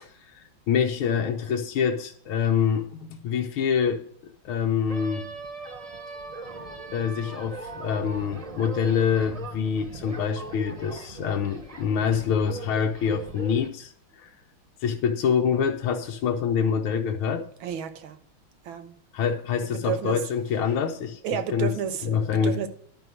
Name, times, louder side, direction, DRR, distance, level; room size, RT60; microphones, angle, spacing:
voice 1, 0.0-5.3 6.9-13.9 14.2-14.3 14.8-17.5 19.1-21.2 21.5-21.7 22.0-22.6, left 7 dB, 85° left, 2 dB, 1.7 m, -26 dB
sound 1, 4.9-13.7, right 2 dB, 25° right, 0.8 m, -39 dB
voice 2, 17.6-18.2 18.7-19.0 19.8-20.2 21.2-22.7, right 8 dB, 75° right, 10 dB, 1.8 m, -31 dB
11.5 x 5.5 x 6.3 m, 0.63 s
omnidirectional pair, 2.3 m